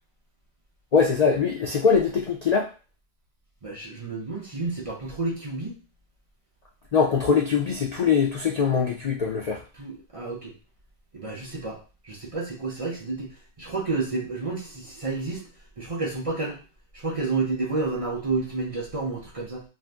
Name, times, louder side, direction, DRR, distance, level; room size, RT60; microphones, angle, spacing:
voice 1, 0.9-2.7 6.9-9.6, left 6 dB, 80° left, -1 dB, 0.3 m, -22 dB
voice 2, 3.6-5.8 9.7-10.5 11.1-13.3 13.6-15.5 15.8-16.6 16.9-19.6, right 3 dB, 40° right, -3 dB, 0.5 m, -30 dB
2.6 x 2.5 x 3.3 m, 0.34 s
omnidirectional pair, 1.3 m